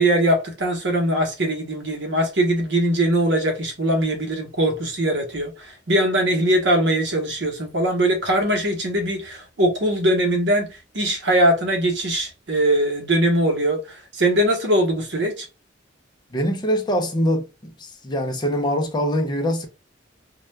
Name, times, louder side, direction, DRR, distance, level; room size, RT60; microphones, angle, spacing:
voice 1, 0.0-10.7 10.9-15.5, right 1 dB, 65° right, 0.8 m, -21 dB
voice 2, 16.3-19.7, equal, 25° left, 0.4 m, -23 dB
2.2 x 2.1 x 3.1 m
head